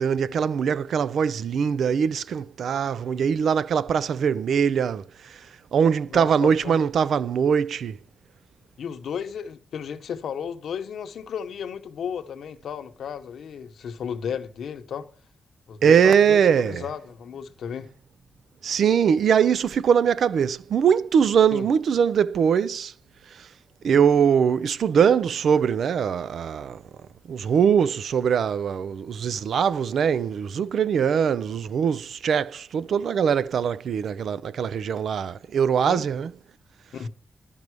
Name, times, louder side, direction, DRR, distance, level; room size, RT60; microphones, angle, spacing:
voice 1, 0.0-5.0 5.7-8.0 15.8-16.8 18.6-22.9 23.8-26.8 27.3-36.3, right 7 dB, 80° right, 0.4 m, -22 dB
voice 2, 6.1-6.8 8.8-15.1 15.7-17.9 21.5-21.7 35.9-36.1 36.9-37.1, left 7 dB, 90° left, 0.9 m, -34 dB
12.0 x 5.4 x 4.7 m
cardioid pair, 95°, 0 cm